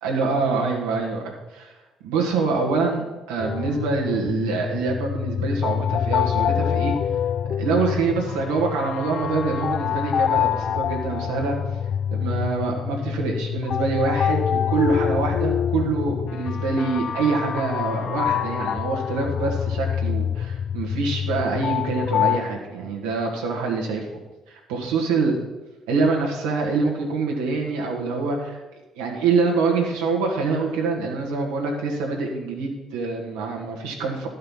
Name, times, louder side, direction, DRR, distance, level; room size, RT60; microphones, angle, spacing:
voice 1, 0.0-1.7 2.0-6.9 7.6-11.6 12.1-24.0 24.5-25.4 25.9-28.6 29.0-34.3, right 4 dB, 85° right, 0 dB, 1.7 m, -25 dB
sound 1, 3.4-22.4, left 8 dB, 60° left, 0.3 m, -26 dB
11.5 x 5.5 x 5.5 m, 1.1 s
hypercardioid pair, 55°, 0 cm